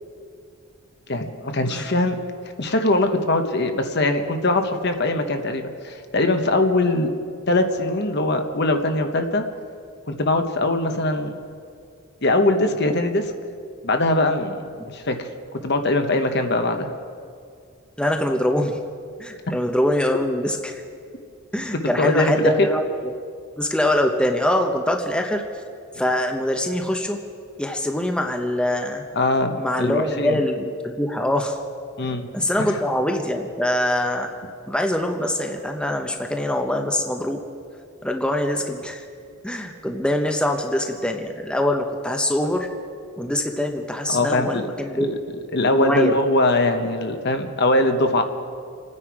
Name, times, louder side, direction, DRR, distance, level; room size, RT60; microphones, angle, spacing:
voice 1, 1.1-2.2 2.6-7.1 7.5-9.4 10.1-11.3 12.2-13.3 13.8-15.3 15.6-16.9 22.0-22.7 29.1-30.4 32.0-32.3 32.6-32.7 44.1-44.7 44.9-45.2 45.5-48.2, left 2 dB, 50° left, 6 dB, 1.0 m, -21 dB
voice 2, 18.0-18.8 19.2-20.8 21.5-23.1 23.6-25.4 25.9-27.2 27.6-29.0 29.6-31.6 32.3-34.3 34.7-37.4 38.0-39.0 39.4-42.7 43.2-45.1 45.7-46.1, left 1 dB, 5° left, 3 dB, 0.8 m, -23 dB
28.0 x 9.8 x 4.8 m, 2.3 s
head